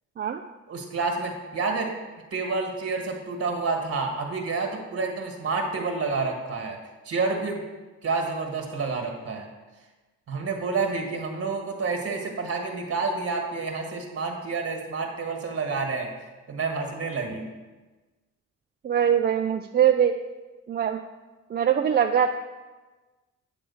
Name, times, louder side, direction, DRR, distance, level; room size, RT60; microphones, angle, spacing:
voice 1, 0.7-1.9 2.3-6.8 7.0-7.6 8.0-9.5 10.3-16.1 16.5-17.5, right 4 dB, 50° right, 2 dB, 1.6 m, -29 dB
voice 2, 18.8-20.2 20.7-21.0 21.5-22.4, right 8 dB, 35° right, 5 dB, 0.4 m, -22 dB
9.1 x 3.5 x 7.0 m, 1.2 s
cardioid pair, 90°, 30 cm